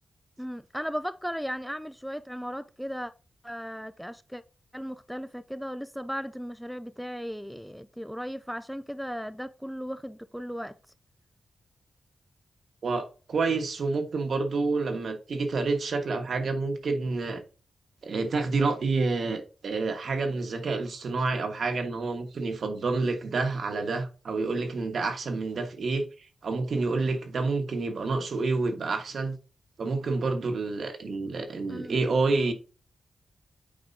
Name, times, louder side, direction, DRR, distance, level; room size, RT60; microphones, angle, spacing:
voice 1, 0.4-3.1 3.4-4.4 4.7-10.8 31.7-32.0, equal, ahead, 0.3 m, -36 dB
voice 2, 12.8-17.4 18.0-26.0 26.4-29.4 29.8-32.5, right 3 dB, 60° right, 1.4 m, -28 dB
8.7 x 5.2 x 2.7 m
wide cardioid pair, 155°, 0 cm